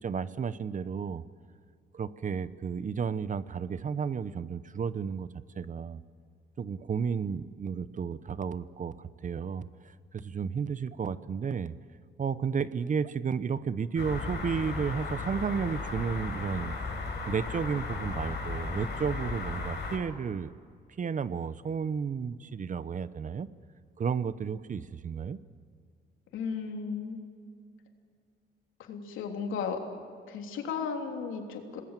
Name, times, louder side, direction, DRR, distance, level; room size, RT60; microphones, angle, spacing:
voice 1, 0.0-1.2 1.9-5.3 5.5-6.0 6.6-9.7 10.1-11.7 12.2-16.8 17.3-20.5 21.0-23.5 24.0-25.4, right 6 dB, 40° right, 15 dB, 0.9 m, -32 dB
sound 1, 14.0-20.0, left 4 dB, 55° left, 7.8 m, -35 dB
voice 2, 26.3-27.2 28.8-29.8 30.3-31.8, left 6 dB, 85° left, 3 dB, 3.3 m, -35 dB
27.5 x 20.0 x 7.5 m, 2.2 s
cardioid pair, 90°, 20 cm